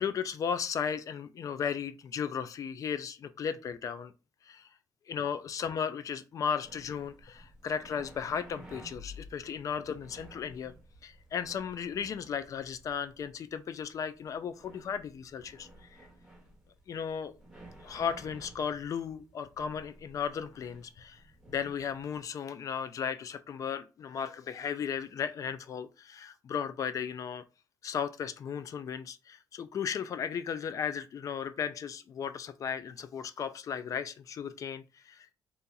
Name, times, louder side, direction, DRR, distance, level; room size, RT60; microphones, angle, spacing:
voice 1, 0.0-4.1 4.4-4.7 5.1-10.7 11.0-16.0 16.9-17.4 17.8-21.2 21.5-27.4 27.8-35.3, left 7 dB, 45° left, 0.3 m, -35 dB
sound 1, 6.6-22.3, equal, 5° right, 1.2 m, -54 dB
2.8 x 2.4 x 3.7 m
cardioid pair, 120°, 8 cm